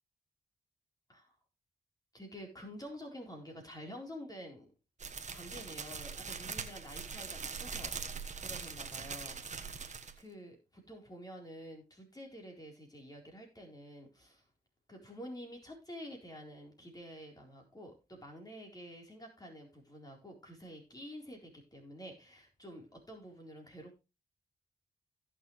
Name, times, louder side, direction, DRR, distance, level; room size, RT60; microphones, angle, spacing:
voice 1, 2.1-4.7 5.3-14.4 14.9-24.0, equal, 25° left, 1 dB, 4.2 m, -49 dB
sound 1, 5.0-10.2, right 5 dB, 45° right, 1.4 m, -42 dB
16.5 x 6.8 x 3.3 m, 0.27 s
cardioid pair, 65°, 17 cm